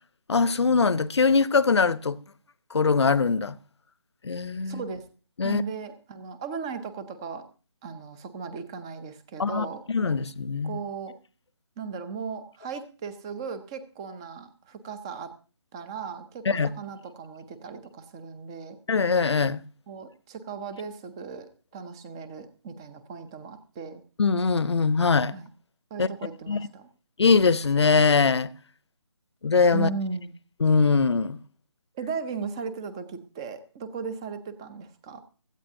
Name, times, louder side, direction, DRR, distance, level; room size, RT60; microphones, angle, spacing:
voice 1, 0.3-2.2 2.7-3.5 4.2-4.8 5.4-5.6 9.4-10.8 16.5-16.7 18.9-19.6 24.2-25.3 26.0-26.1 26.5-26.6 27.2-28.5 29.4-29.9 30.6-31.4, left 4 dB, 70° left, 0.8 m, -22 dB
voice 2, 4.6-5.0 5.4-7.4 7.8-9.8 10.6-11.1 11.8-15.3 15.7-18.8 19.9-24.0 25.3-25.5 25.9-26.9 29.7-30.3 31.9-35.2, right 5 dB, 10° right, 0.5 m, -37 dB
17.0 x 13.5 x 2.7 m
figure-of-eight pair, 165°, 15 cm